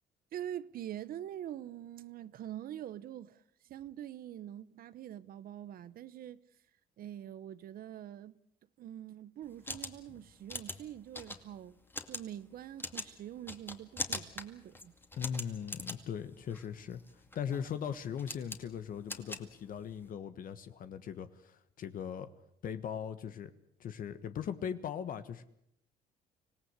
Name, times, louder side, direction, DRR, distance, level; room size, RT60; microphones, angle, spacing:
voice 1, 0.3-3.4 3.7-6.4 7.0-8.3 8.8-11.8 12.1-14.9, right 11 dB, 60° right, 0.9 m, -44 dB
sound 1, 9.4-20.1, left 2 dB, 10° left, 2.2 m, -43 dB
voice 2, 15.1-17.0 17.3-22.3 22.6-23.5 23.8-25.4, left 8 dB, 55° left, 1.4 m, -39 dB
25.5 x 18.0 x 8.2 m
cardioid pair, 110°, 17 cm